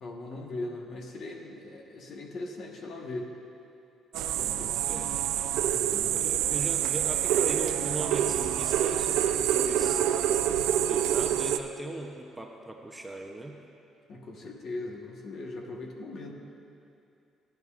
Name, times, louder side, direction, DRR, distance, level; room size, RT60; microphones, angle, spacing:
voice 1, 0.0-3.3 4.4-6.2 14.1-16.3, left 2 dB, 50° left, 1 dB, 1.3 m, -40 dB
sound 1, 4.1-11.6, right 10 dB, 90° right, 0.4 m, -27 dB
voice 2, 6.1-10.0 10.8-13.6, right 2 dB, 10° right, 1 dB, 0.7 m, -39 dB
16.0 x 10.5 x 2.5 m, 2.7 s
cardioid pair, 120°, 0 cm